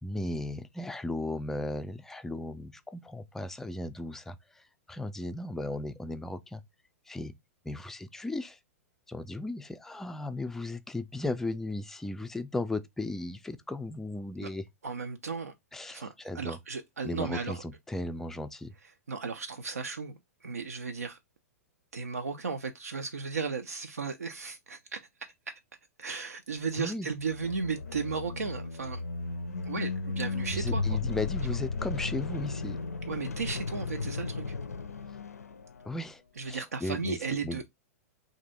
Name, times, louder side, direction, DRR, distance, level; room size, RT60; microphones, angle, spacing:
voice 1, 0.0-6.6 7.1-7.3 7.6-8.6 9.1-14.6 15.7-16.6 17.0-18.7 26.8-27.1 30.5-32.8 35.8-37.6, left 2 dB, 5° left, 0.3 m, -36 dB
voice 2, 14.8-15.5 15.9-17.6 19.1-21.2 21.9-25.0 26.0-29.0 29.7-31.0 33.1-34.5 36.4-37.6, right 5 dB, 75° right, 0.4 m, -35 dB
sound 1, 27.2-36.0, left 4 dB, 80° left, 0.4 m, -35 dB
3.2 x 2.6 x 3.7 m
figure-of-eight pair, 105°, 8 cm